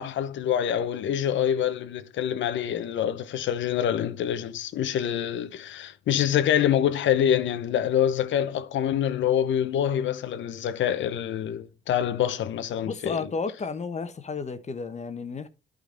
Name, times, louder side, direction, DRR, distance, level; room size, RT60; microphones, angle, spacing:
voice 1, 0.0-13.2, left 10 dB, 70° left, 0.8 m, -26 dB
voice 2, 12.8-15.5, left 4 dB, 35° left, 1.1 m, -32 dB
11.5 x 3.9 x 3.8 m
cardioid pair, 90°, 20 cm